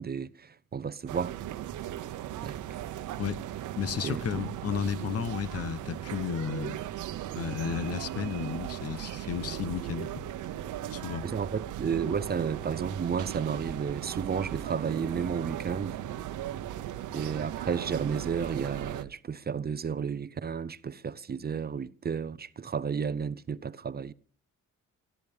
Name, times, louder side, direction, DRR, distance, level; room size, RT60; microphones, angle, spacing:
voice 1, 0.0-1.3 2.4-2.6 4.0-4.4 7.3-7.4 11.2-16.0 17.1-24.1, right 6 dB, 30° right, 0.7 m, -32 dB
sound 1, 1.1-19.0, right 12 dB, 80° right, 1.0 m, -37 dB
voice 2, 3.8-6.8 7.4-10.2 10.9-11.3, left 8 dB, 50° left, 1.0 m, -33 dB
22.5 x 14.5 x 3.5 m
cardioid pair, 90°, 30 cm